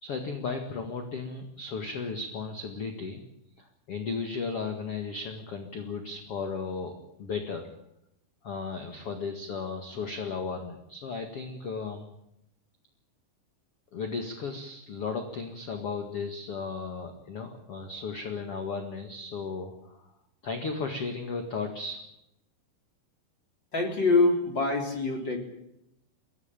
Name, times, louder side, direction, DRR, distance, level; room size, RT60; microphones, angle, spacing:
voice 1, 0.0-3.2 3.6-7.7 8.4-12.1 13.9-20.1 20.4-22.0, left 4 dB, 50° left, 5 dB, 1.9 m, -35 dB
voice 2, 23.7-25.4, left 3 dB, 25° left, 3 dB, 3.7 m, -24 dB
23.5 x 17.0 x 9.0 m, 0.83 s
omnidirectional pair, 5.4 m